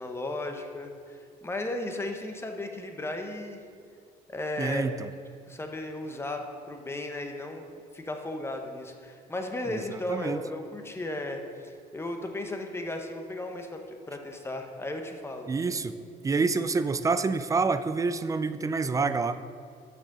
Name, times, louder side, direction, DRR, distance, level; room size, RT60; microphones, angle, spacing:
voice 1, 0.0-3.6 4.3-4.9 5.5-15.5, left 2 dB, 15° left, 4 dB, 0.9 m, -35 dB
voice 2, 4.6-5.1 9.7-10.4 15.5-15.9 16.2-19.4, right 4 dB, 20° right, 12 dB, 0.3 m, -27 dB
6.3 x 6.1 x 6.6 m, 2.2 s
cardioid pair, 110°, 17 cm